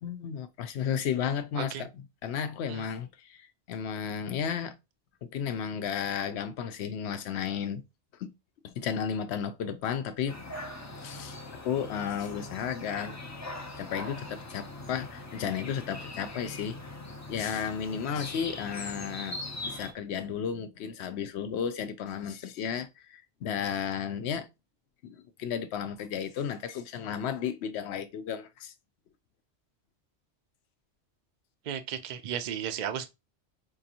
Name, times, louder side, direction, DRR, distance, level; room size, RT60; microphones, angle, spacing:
voice 1, 0.0-4.7 5.2-7.8 8.2-8.3 8.6-10.4 11.0-11.4 11.6-13.2 13.8-16.8 17.3-24.5 25.0-28.7, left 8 dB, 70° left, 0.8 m, -33 dB
sound 1, 10.3-19.9, left 2 dB, 25° left, 0.3 m, -41 dB
voice 2, 31.7-33.1, right 9 dB, 55° right, 0.5 m, -34 dB
4.6 x 2.5 x 2.8 m
omnidirectional pair, 1.2 m